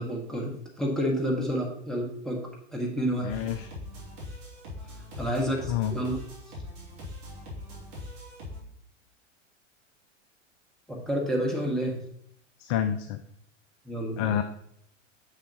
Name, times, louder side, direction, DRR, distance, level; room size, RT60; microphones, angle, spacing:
voice 1, 0.0-2.4 2.7-3.3 5.2-6.2 10.9-11.9 13.8-14.3, equal, ahead, -3 dB, 1.7 m, -29 dB
voice 2, 3.2-3.7 5.7-5.9 12.6-13.2 14.2-14.4, left 10 dB, 30° left, 9 dB, 0.4 m, -28 dB
sound 1, 3.3-8.6, left 1 dB, 45° right, 2.9 m, -41 dB
7.1 x 6.5 x 3.1 m, 0.69 s
figure-of-eight pair, 90°, 37 cm